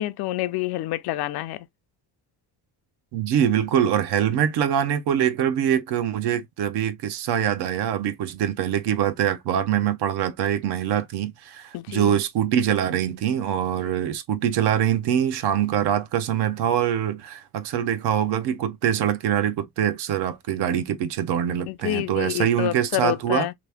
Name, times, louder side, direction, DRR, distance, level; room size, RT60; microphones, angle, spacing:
voice 1, 0.0-1.7 11.7-12.1 21.7-23.5, left 15 dB, 75° left, 0.5 m, -28 dB
voice 2, 3.1-23.5, right 10 dB, 80° right, 0.8 m, -24 dB
3.0 x 2.4 x 3.3 m
cardioid pair, 125°, 39 cm